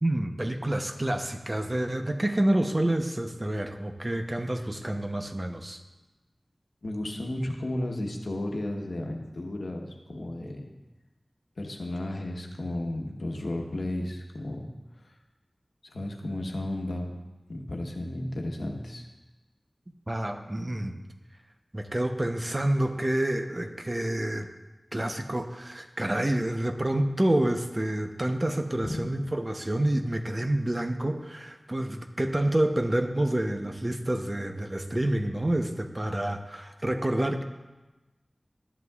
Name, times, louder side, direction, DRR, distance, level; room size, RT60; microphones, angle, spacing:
voice 1, 0.0-5.8 20.1-20.9 21.7-24.5 24.9-37.4, right 1 dB, 30° right, 6 dB, 0.8 m, -28 dB
voice 2, 6.8-10.7 11.6-14.7 15.0-15.1 15.9-17.1 17.5-19.1 28.8-28.9, left 1 dB, 85° left, 1 dB, 1.1 m, -33 dB
13.0 x 11.0 x 2.4 m, 1.1 s
wide cardioid pair, 65°, 0 cm